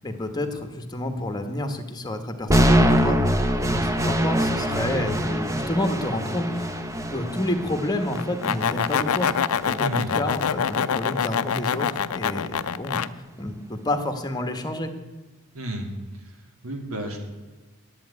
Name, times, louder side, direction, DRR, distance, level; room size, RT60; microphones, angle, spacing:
voice 1, 0.0-3.2 3.6-6.7 7.1-9.3 9.6-13.0 13.4-14.9, left 1 dB, 20° left, 7 dB, 1.1 m, -29 dB
sound 1, 2.5-10.5, equal, 15° right, 0.7 m, -24 dB
sound 2, 8.1-13.1, left 7 dB, 85° left, 0.5 m, -25 dB
voice 2, 9.8-10.1 15.5-15.9 16.3-16.4 16.6-17.2, right 1 dB, 75° right, 3 dB, 2.4 m, -31 dB
10.5 x 7.9 x 9.5 m, 1.3 s
head